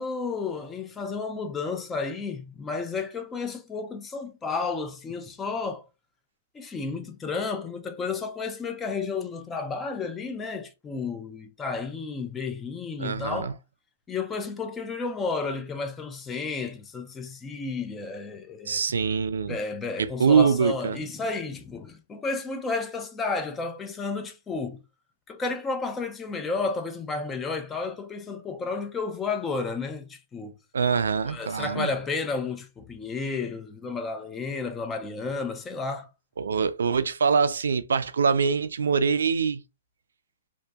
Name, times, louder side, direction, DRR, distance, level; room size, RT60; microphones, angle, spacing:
voice 1, 0.0-5.9 6.5-13.6 14.1-18.8 19.5-24.8 25.3-30.5 31.3-36.1, left 4 dB, 15° left, 0.3 m, -32 dB
voice 2, 13.0-13.5 18.7-19.6 20.0-21.0 30.7-31.9 36.4-39.6, right 5 dB, 85° right, 0.3 m, -24 dB
2.7 x 2.2 x 2.2 m
hypercardioid pair, 150°, 0 cm